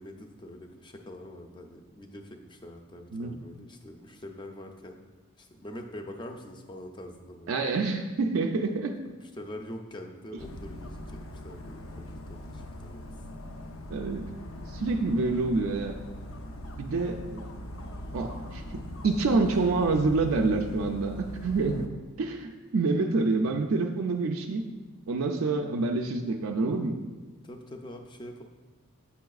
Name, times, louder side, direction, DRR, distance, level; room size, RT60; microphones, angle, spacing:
voice 1, 0.0-5.0 5.4-7.6 9.1-13.0 27.4-28.4, left 1 dB, 20° left, 3 dB, 0.5 m, -44 dB
voice 2, 7.5-9.0 13.9-14.2 14.7-16.0 16.8-17.4 18.1-21.9 22.2-24.6 25.1-27.0, right 3 dB, 80° right, 2 dB, 0.4 m, -27 dB
Dog, 10.4-21.9, left 1 dB, 80° left, 0.6 m, -41 dB
8.2 x 5.6 x 2.3 m, 1.3 s
head